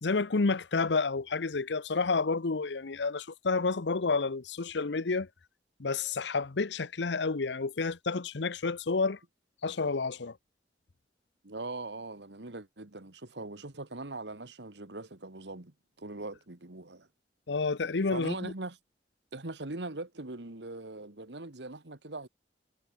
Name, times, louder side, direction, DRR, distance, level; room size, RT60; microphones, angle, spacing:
voice 1, 0.0-5.3 5.8-9.2 9.6-10.4 17.5-18.5, left 4 dB, 75° left, 0.8 m, -30 dB
voice 2, 11.4-17.1 18.1-18.8 19.3-22.3, right 2 dB, 70° right, 1.9 m, -41 dB
head